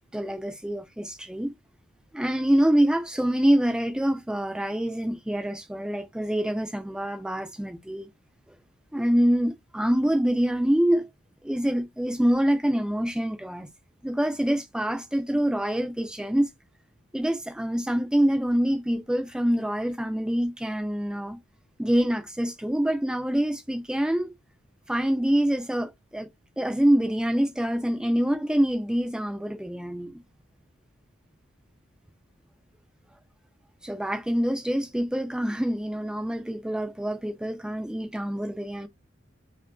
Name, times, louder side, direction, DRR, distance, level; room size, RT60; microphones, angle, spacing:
voice 1, 0.1-1.5 2.1-8.1 8.9-11.1 11.4-13.7 14.0-16.5 17.1-21.4 21.8-24.3 24.9-26.3 26.6-30.2 33.8-38.9, equal, 5° right, 0.4 m, -25 dB
2.7 x 2.4 x 2.2 m
head